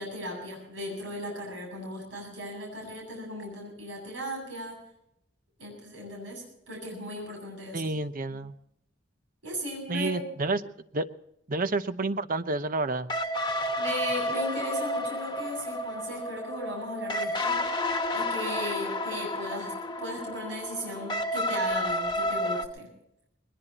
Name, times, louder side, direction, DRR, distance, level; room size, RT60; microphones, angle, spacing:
voice 1, 0.0-4.8 5.6-7.9 8.3-8.4 9.4-10.2 13.8-17.6 18.1-22.9, equal, 85° right, -1 dB, 7.9 m, -37 dB
voice 2, 7.7-8.5 9.9-11.1 11.5-13.1, right 2 dB, 50° right, 11 dB, 0.9 m, -30 dB
sound 1, 13.1-22.7, left 1 dB, 25° left, 1.3 m, -31 dB
21.0 x 21.0 x 3.0 m, 0.75 s
head